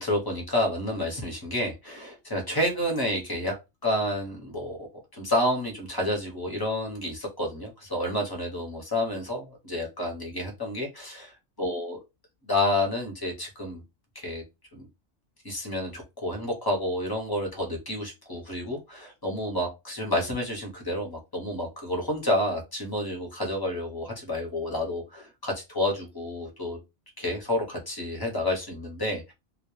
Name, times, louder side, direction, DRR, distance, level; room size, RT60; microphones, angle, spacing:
voice 1, 0.0-3.6 3.8-4.8 5.1-11.3 11.6-12.0 12.4-13.8 14.1-14.4 14.7-14.9 15.4-26.8 27.2-29.3, left 1 dB, 20° left, 0 dB, 0.8 m, -29 dB
2.3 x 2.2 x 3.0 m, 0.24 s
omnidirectional pair, 1.3 m